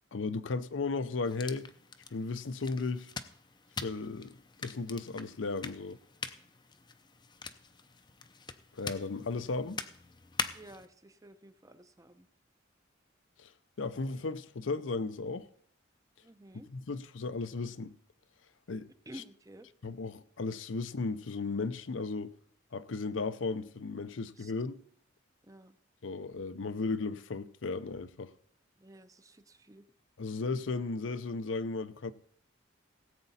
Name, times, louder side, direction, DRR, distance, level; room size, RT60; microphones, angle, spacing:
voice 1, 0.1-1.7 2.1-3.1 3.8-6.0 8.7-9.8 13.4-13.5 13.8-15.5 16.7-17.9 18.7-18.9 19.1-19.2 19.8-22.3 22.7-24.8 26.0-28.3 30.2-32.1, left 3 dB, 85° left, 0.6 m, -35 dB
sound 1, 1.2-10.9, left 5 dB, 25° left, 0.5 m, -43 dB
voice 2, 10.5-12.3 16.2-16.7 19.1-19.7 24.4-24.5 25.5-25.8 28.8-29.8, right 1 dB, 15° right, 0.6 m, -52 dB
17.5 x 8.0 x 4.2 m
head